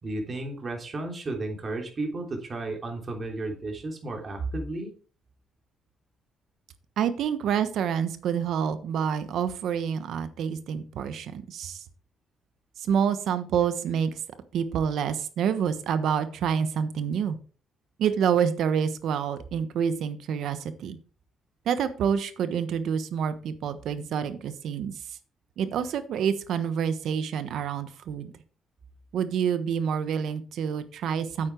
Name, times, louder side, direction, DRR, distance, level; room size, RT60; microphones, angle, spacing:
voice 1, 0.0-4.9, right 2 dB, 40° right, 2 dB, 3.3 m, -33 dB
voice 2, 7.0-11.8 12.8-14.2 14.5-17.4 18.0-21.0 21.6-25.2 25.6-28.3 29.1-31.5, right 7 dB, 75° right, 12 dB, 1.2 m, -27 dB
8.8 x 8.8 x 4.6 m, 0.39 s
cardioid pair, 90°, 0 cm